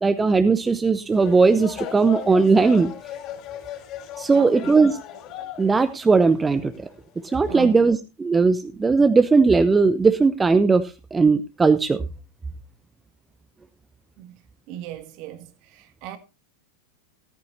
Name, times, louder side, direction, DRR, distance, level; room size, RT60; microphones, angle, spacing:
voice 1, 0.0-2.9 4.2-4.9 5.6-6.9 7.3-12.0, right 4 dB, 15° right, 0.7 m, -18 dB
sound 1, 1.1-5.9 6.1-6.9 7.3-7.8, left 10 dB, 35° left, 5.1 m, -37 dB
voice 2, 4.3-4.8 7.4-7.8 14.2-14.4 14.7-16.2, right 11 dB, 45° right, 1.8 m, -37 dB
14.5 x 14.0 x 2.6 m
figure-of-eight pair, 90°, 0 cm